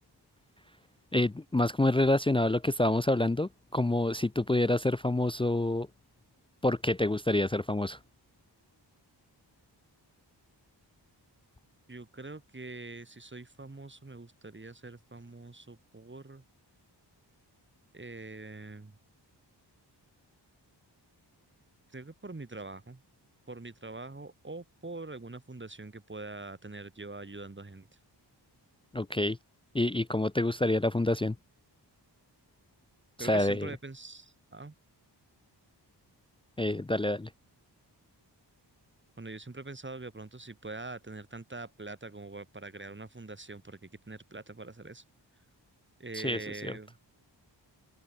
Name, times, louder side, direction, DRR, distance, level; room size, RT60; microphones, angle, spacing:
voice 1, 1.1-5.9 6.6-8.0 28.9-29.4 29.7-31.4 33.2-33.7 36.6-37.3 46.1-46.7, left 1 dB, 15° left, 0.5 m, -27 dB
voice 2, 11.9-16.4 17.9-19.0 21.9-23.0 23.5-27.9 33.2-34.7 39.2-45.0 46.0-47.0, right 3 dB, 25° right, 4.8 m, -44 dB
open air
wide cardioid pair, 100°, 43 cm